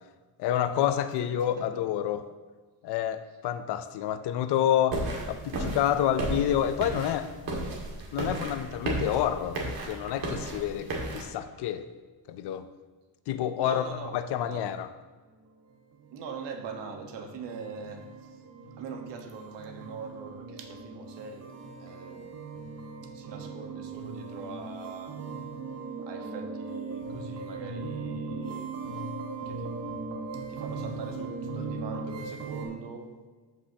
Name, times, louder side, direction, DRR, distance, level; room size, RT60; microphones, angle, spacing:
voice 1, 0.4-2.2 2.8-7.3 8.1-11.9 12.3-12.7 13.3-13.8 14.1-14.9, left 10 dB, 65° left, 11 dB, 0.7 m, -28 dB
sound 1, 4.9-11.3, right 2 dB, 55° right, 2.0 m, -34 dB
voice 2, 13.5-14.6 16.1-18.4 18.8-22.3 23.0-25.2 26.0-28.9 29.5-29.8 30.3-33.1, right 5 dB, 75° right, 4 dB, 1.4 m, -42 dB
sound 2, 15.7-32.7, right 3 dB, 35° right, 1.6 m, -39 dB
14.0 x 5.5 x 2.8 m, 1.4 s
cardioid pair, 135°, 43 cm